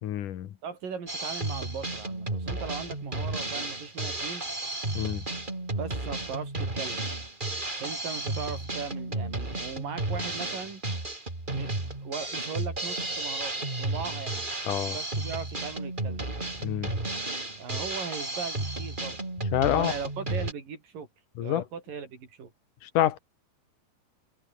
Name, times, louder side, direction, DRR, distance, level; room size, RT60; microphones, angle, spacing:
voice 1, 0.0-0.5 4.9-5.2 14.7-15.0 16.6-16.9 19.5-19.9 21.4-21.6 22.8-23.2, left 12 dB, 60° left, 2.6 m, -27 dB
voice 2, 0.6-4.5 5.8-7.0 7.8-10.8 11.5-11.7 12.0-14.5 14.9-16.3 17.6-19.2 19.5-21.1 21.4-22.5, right 6 dB, 55° right, 6.4 m, -38 dB
Drum kit, 1.1-20.5, right 2 dB, 10° right, 3.0 m, -33 dB
open air
omnidirectional pair, 4.9 m